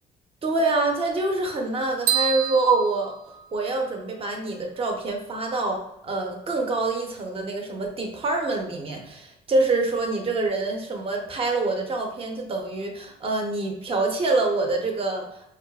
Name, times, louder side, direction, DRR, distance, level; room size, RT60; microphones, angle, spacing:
voice 1, 0.4-3.2 3.5-15.3, right 3 dB, 35° right, 2 dB, 0.8 m, -26 dB
sound 1, 2.1-4.0, right 9 dB, 85° right, 0.5 m, -28 dB
4.8 x 2.4 x 2.3 m, 0.82 s
cardioid pair, 110°, 17 cm